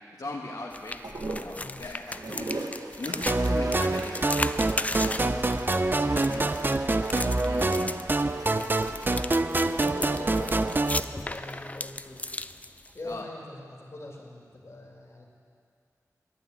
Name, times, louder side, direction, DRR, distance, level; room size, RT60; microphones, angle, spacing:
voice 1, 0.1-1.0 1.3-2.6 3.0-4.4 6.3-6.5 7.4-8.0 13.0-13.2, left 2 dB, 80° left, -3 dB, 1.2 m, -38 dB
sound 1, 0.7-13.1, left 2 dB, 25° left, 0.4 m, -36 dB
sound 2, 1.0-11.7 12.9-13.5, right 2 dB, 75° right, 1.1 m, -41 dB
sound 3, 3.3-11.0, right 2 dB, 35° right, 0.5 m, -26 dB
voice 2, 5.1-5.7 5.9-6.5 8.6-8.8 9.5-12.2 12.9-15.3, left 2 dB, 50° left, -2 dB, 2.4 m, -43 dB
12.0 x 9.1 x 9.1 m, 2.5 s
wide cardioid pair, 80°, 6 cm